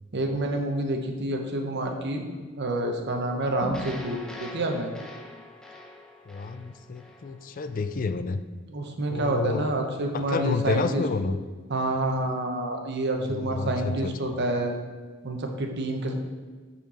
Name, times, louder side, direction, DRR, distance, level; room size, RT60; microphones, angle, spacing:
voice 1, 0.1-2.2 2.6-4.9 8.7-11.0 11.7-14.7 15.2-16.1, right 1 dB, 55° right, 3 dB, 0.9 m, -28 dB
sound 1, 3.6-7.9, left 1 dB, 5° left, 0.8 m, -41 dB
voice 2, 6.3-8.4 9.1-9.7 10.1-11.4 13.2-14.1, left 4 dB, 45° left, 11 dB, 0.4 m, -30 dB
8.9 x 4.3 x 4.2 m, 1.4 s
head